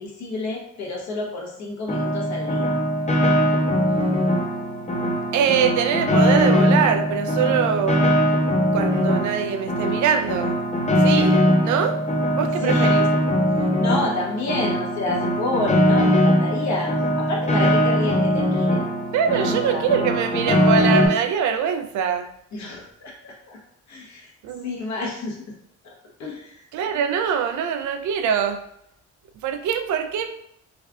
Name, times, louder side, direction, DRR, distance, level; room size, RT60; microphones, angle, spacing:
voice 1, 0.0-2.7 12.4-12.9 13.8-18.8 19.3-19.9 22.5-23.6 23.9-24.3 24.6-25.4 25.8-25.9 26.2-26.6, left 2 dB, 65° left, -2 dB, 1.2 m, -29 dB
Piano, 1.9-21.1, equal, 25° left, 0.7 m, -21 dB
voice 2, 5.3-8.1 8.7-10.6 11.0-12.0 12.3-13.0 19.1-22.3 24.4-24.7 26.7-28.6 29.4-30.3, right 7 dB, 75° right, 6 dB, 0.5 m, -23 dB
3.3 x 2.4 x 3.4 m, 0.73 s
cardioid pair, 90°, 30 cm